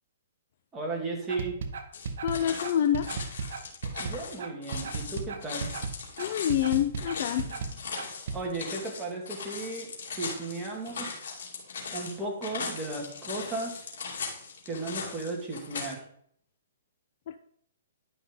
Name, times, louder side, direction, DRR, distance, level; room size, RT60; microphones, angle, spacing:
voice 1, 0.7-1.6 4.0-5.7 8.0-11.2 11.9-13.7 14.7-16.0, right 3 dB, 15° right, -2 dB, 2.2 m, -35 dB
sound 1, 1.3-8.4, right 5 dB, 70° right, 1.0 m, -35 dB
sound 2, 1.9-15.9, left 5 dB, 70° left, 2.6 m, -39 dB
voice 2, 2.2-3.1 6.2-7.5 17.3-17.4, left 10 dB, 55° left, 9 dB, 0.5 m, -27 dB
11.0 x 5.6 x 3.8 m, 0.66 s
hypercardioid pair, 145°, 0 cm